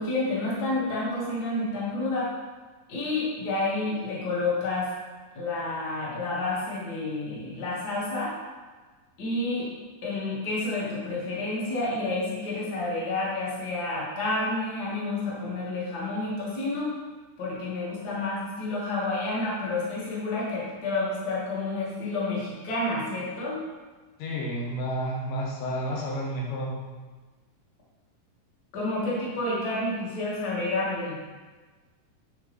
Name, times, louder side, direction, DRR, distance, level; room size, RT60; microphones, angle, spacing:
voice 1, 0.0-2.3 2.9-4.9 5.3-8.3 9.2-9.7 10.0-17.0 17.4-23.6 28.7-31.2, left 2 dB, 45° left, -6 dB, 1.3 m, -29 dB
voice 2, 24.2-26.8, equal, 80° left, -3 dB, 2.6 m, -30 dB
8.1 x 3.9 x 3.1 m, 1.3 s
omnidirectional pair, 3.9 m